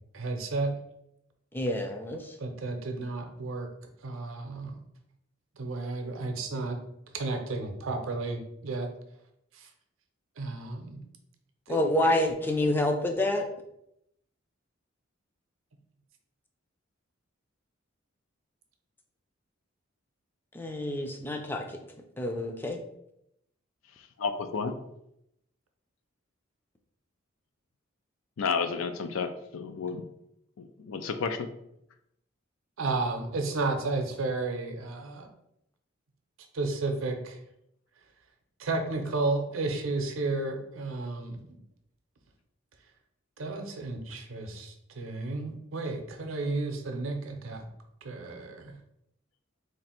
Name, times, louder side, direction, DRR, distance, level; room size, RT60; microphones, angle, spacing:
voice 1, 0.1-0.7 2.4-3.7 4.0-4.8 5.6-6.8 7.1-8.9 9.5-9.7 10.4-11.0 11.7-11.8 32.8-35.3 36.5-37.4 38.6-41.6 43.4-47.7 48.0-48.8, right 3 dB, 80° right, 5 dB, 0.6 m, -32 dB
voice 2, 1.5-2.4 11.7-13.4 20.5-21.8 22.2-22.8, left 1 dB, 10° left, 3 dB, 0.4 m, -28 dB
voice 3, 24.2-24.7 28.4-30.0 30.6-31.5, left 5 dB, 85° left, 9 dB, 0.4 m, -31 dB
3.2 x 2.5 x 4.2 m, 0.79 s
head